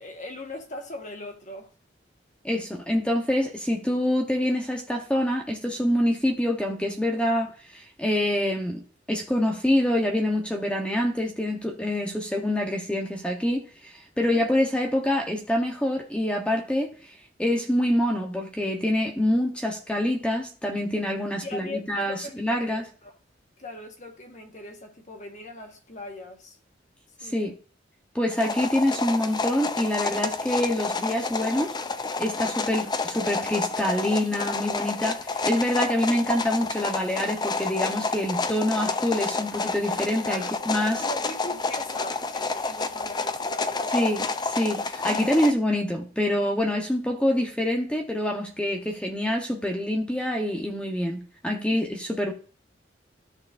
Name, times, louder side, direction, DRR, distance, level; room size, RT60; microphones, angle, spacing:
voice 1, 0.0-1.7 14.1-14.4 21.4-22.3 22.6-23.1 23.6-26.6 27.2-27.4 40.3-40.5 41.0-43.9 51.7-51.9, left 1 dB, 40° left, 1.4 m, -39 dB
voice 2, 2.4-8.8 9.1-16.9 17.4-22.8 27.2-27.5 28.1-31.7 32.2-41.0 43.9-52.3, left 1 dB, 5° left, 1.0 m, -26 dB
sound 1, 28.3-45.5, left 3 dB, 25° left, 0.5 m, -29 dB
13.5 x 6.6 x 2.6 m
head